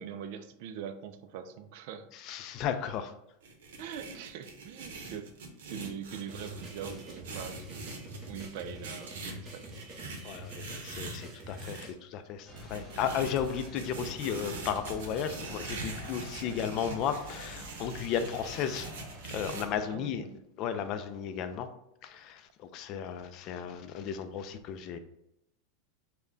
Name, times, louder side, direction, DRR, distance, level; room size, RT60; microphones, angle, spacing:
voice 1, 0.0-2.1 3.8-5.3 5.7-7.9 8.3-9.8 16.5-16.6 19.9-20.4, right 8 dB, 60° right, 9 dB, 0.3 m, -42 dB
voice 2, 2.1-3.1 10.2-18.9 19.3-20.2 20.6-21.7 22.0-25.0, left 8 dB, 40° left, 10 dB, 0.3 m, -34 dB
sound 1, 3.4-11.8 12.6-19.6, right 3 dB, 90° right, 0.7 m, -43 dB
sound 2, 6.3-11.9, equal, 25° right, 0.7 m, -46 dB
sound 3, 12.4-19.8, equal, 5° left, 0.8 m, -47 dB
3.3 x 2.1 x 3.7 m, 0.80 s
supercardioid pair, 150°, 0 cm